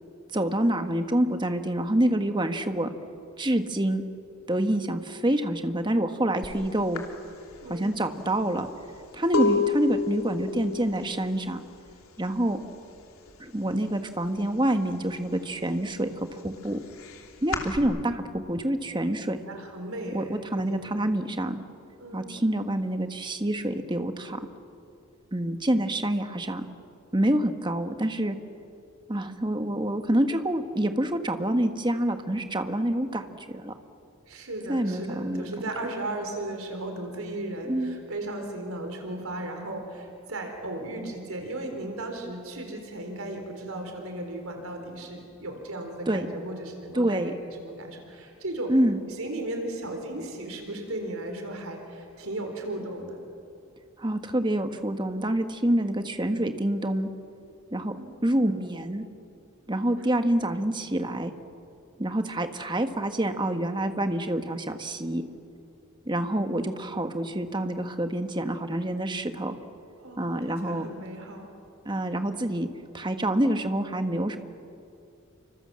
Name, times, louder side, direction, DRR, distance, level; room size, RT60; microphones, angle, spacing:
voice 1, 0.3-2.9 3.4-4.0 4.5-7.0 7.7-8.7 9.1-11.6 12.2-12.6 13.4-16.1 16.4-16.8 17.4-19.4 20.1-21.6 22.1-24.4 25.3-26.6 27.1-28.4 29.1-33.7 34.7-35.5 37.7-37.9 46.1-46.3 46.9-47.3 48.7-49.0 54.0-57.1 57.7-57.9 58.2-59.0 59.7-61.3 62.0-65.2 66.1-69.6 70.2-70.9 71.8-72.7 72.9-74.4, right 1 dB, 20° right, 7 dB, 1.4 m, -27 dB
sound 1, 6.4-6.6 6.9-12.6 12.9-13.4 13.7-14.8 15.2-17.8, left 4 dB, 80° left, 3.0 m, -31 dB
voice 2, 7.6-7.9 19.5-20.8 22.0-22.3 34.2-48.7 49.1-53.2 57.9-58.2 70.0-71.6, right 1 dB, 80° right, 4 dB, 4.0 m, -36 dB
29.5 x 25.5 x 7.6 m, 2.6 s
head